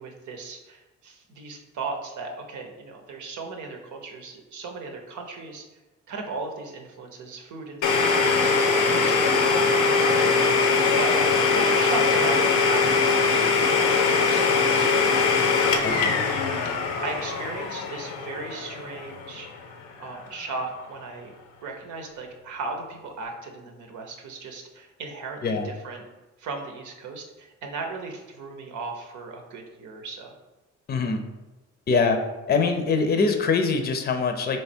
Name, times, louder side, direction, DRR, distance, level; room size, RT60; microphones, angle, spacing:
voice 1, 0.0-5.6 6.1-10.4 10.9-15.2 15.7-16.2 17.0-19.5 20.0-21.3 21.6-26.0 26.4-30.3, right 3 dB, 80° right, 3 dB, 0.8 m, -36 dB
Domestic sounds home sounds, 7.8-19.5, left 4 dB, 90° left, 0.6 m, -22 dB
voice 2, 30.9-31.2 31.9-32.2 32.5-34.6, left 4 dB, 35° left, 5 dB, 0.5 m, -23 dB
3.4 x 3.2 x 4.4 m, 1.1 s
cardioid pair, 90°, 30 cm